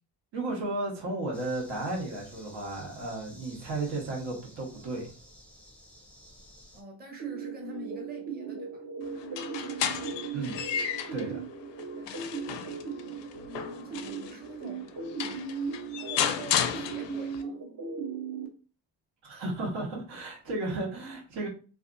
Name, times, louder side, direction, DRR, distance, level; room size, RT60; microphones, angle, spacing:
voice 1, 0.3-5.0 10.3-10.6 11.1-11.4 19.2-21.5, right 2 dB, 85° right, 1.2 m, -34 dB
sound 1, 1.3-6.8, equal, 5° left, 0.4 m, -53 dB
voice 2, 6.7-8.8 12.0-12.7 13.4-15.5 16.0-17.6, right 1 dB, 25° right, 0.8 m, -46 dB
sound 2, 7.2-18.5, right 5 dB, 55° right, 0.7 m, -38 dB
sound 3, 9.2-11.3 11.8-14.4 14.9-15.0 15.2-17.4, left 9 dB, 85° left, 0.5 m, -33 dB
2.7 x 2.4 x 2.4 m
cardioid pair, 120°, 42 cm